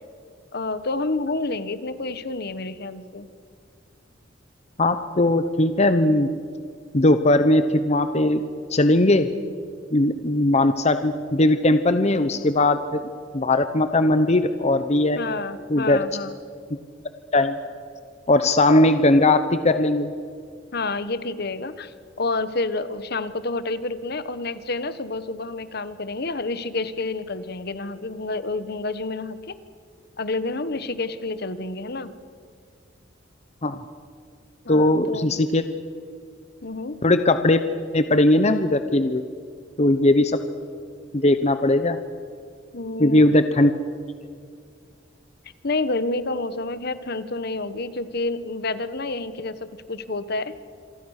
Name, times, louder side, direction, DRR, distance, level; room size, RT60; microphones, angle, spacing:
voice 1, 0.5-3.3 15.1-16.3 20.7-29.6 30.2-32.1 34.6-35.3 36.6-37.0 42.7-43.3 45.6-49.6 49.9-50.6, left 3 dB, 60° left, 13 dB, 1.2 m, -29 dB
voice 2, 4.8-6.3 6.9-8.4 8.7-9.3 9.9-13.0 13.3-15.2 15.7-16.0 17.3-17.6 18.3-20.1 33.6-33.8 34.7-35.6 37.0-37.6 37.9-39.2 39.8-40.4 41.1-42.0 43.0-43.7, left 1 dB, 35° left, 10 dB, 0.9 m, -19 dB
27.5 x 23.5 x 6.6 m, 2.2 s
head